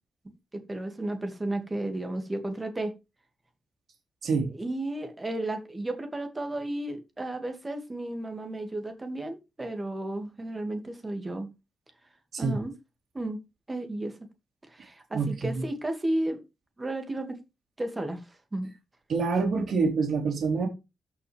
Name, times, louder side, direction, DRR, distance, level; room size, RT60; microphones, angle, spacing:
voice 1, 0.5-2.9 4.5-11.5 12.4-12.7 13.1-13.4 13.7-14.1 14.7-16.4 16.8-17.4 17.8-18.2 18.5-18.7, right 1 dB, 20° right, 2.4 m, -33 dB
voice 2, 15.1-15.6 19.1-20.7, right 4 dB, 60° right, 3.3 m, -26 dB
13.5 x 6.3 x 3.5 m
wide cardioid pair, 135°, 0 cm